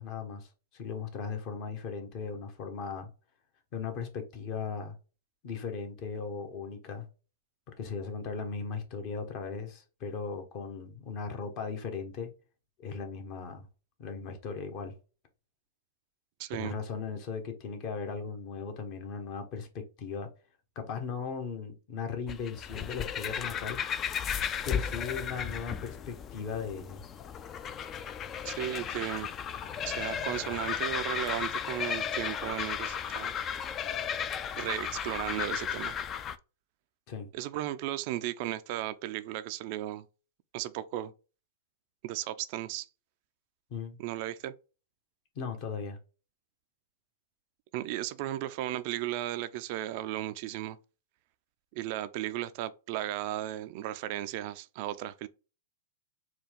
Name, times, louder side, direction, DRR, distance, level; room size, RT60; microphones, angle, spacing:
voice 1, 0.0-3.1 3.7-4.9 5.4-7.1 7.8-12.3 12.8-13.7 14.0-14.9 16.5-19.7 20.0-20.3 20.7-23.8 24.6-27.0 37.1-37.3 43.7-44.0 45.3-46.0, left 5 dB, 45° left, 1.2 m, -37 dB
voice 2, 16.4-16.7 28.4-29.3 29.8-33.3 34.6-36.0 37.3-40.1 40.5-41.1 42.0-42.9 44.0-44.5 47.7-50.8 51.8-55.3, right 14 dB, 50° right, 0.3 m, -35 dB
sound 1, 22.3-36.4, left 8 dB, 30° left, 0.4 m, -35 dB
4.4 x 2.3 x 3.5 m
hypercardioid pair, 110°, 0 cm